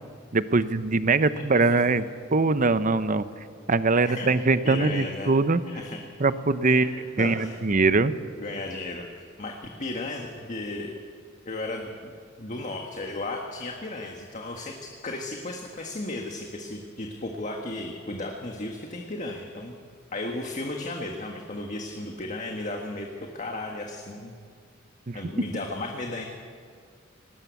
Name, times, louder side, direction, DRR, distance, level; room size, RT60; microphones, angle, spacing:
voice 1, 0.3-2.0 2.3-3.3 3.7-5.6 6.2-6.9 7.2-8.1 25.1-25.2, right 3 dB, 40° right, 13 dB, 0.7 m, -22 dB
voice 2, 4.0-5.3 5.7-6.0 6.7-7.6 8.4-10.9 11.4-19.7 20.1-24.3 25.1-26.2, left 2 dB, 40° left, 2 dB, 1.6 m, -35 dB
19.5 x 18.5 x 8.3 m, 2.2 s
head